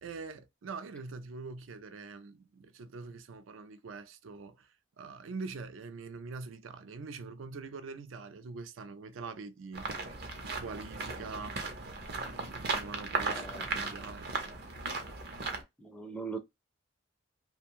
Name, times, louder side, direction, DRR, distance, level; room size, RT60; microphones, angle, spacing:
voice 1, 0.0-9.9 10.5-11.6 12.1-14.7, right 4 dB, 80° right, 0.4 m, -44 dB
sound 1, 9.7-15.6, right 3 dB, 55° right, 0.7 m, -36 dB
voice 2, 13.2-13.7 15.8-16.4, right 4 dB, 5° left, 0.4 m, -40 dB
2.6 x 2.2 x 2.9 m
head